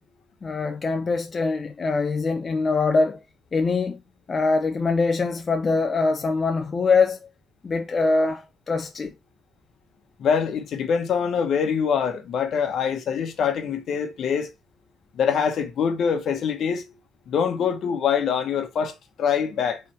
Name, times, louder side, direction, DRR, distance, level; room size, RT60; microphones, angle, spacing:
voice 1, 0.4-3.2 3.5-4.0 4.3-7.2 7.6-9.1, left 4 dB, 35° left, 0.5 m, -23 dB
voice 2, 10.2-14.5 15.1-16.9 17.3-19.8, left 7 dB, 65° left, 1.0 m, -24 dB
4.3 x 3.4 x 3.3 m
cardioid pair, 90°, 0 cm